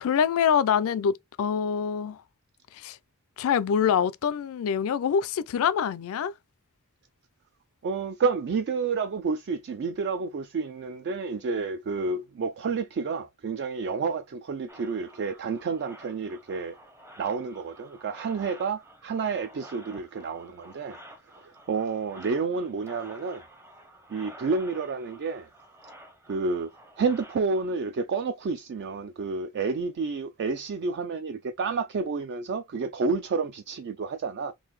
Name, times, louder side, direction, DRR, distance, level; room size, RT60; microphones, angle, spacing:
voice 1, 0.0-2.2 2.7-3.0 3.4-6.3, left 7 dB, 65° left, 0.3 m, -25 dB
voice 2, 7.8-16.8 17.2-21.0 21.4-23.4 24.1-25.5 26.3-26.7 27.0-34.5, right 4 dB, 50° right, 0.3 m, -30 dB
sound 1, 14.7-27.8, right 1 dB, 10° right, 0.7 m, -50 dB
3.8 x 2.6 x 3.0 m
head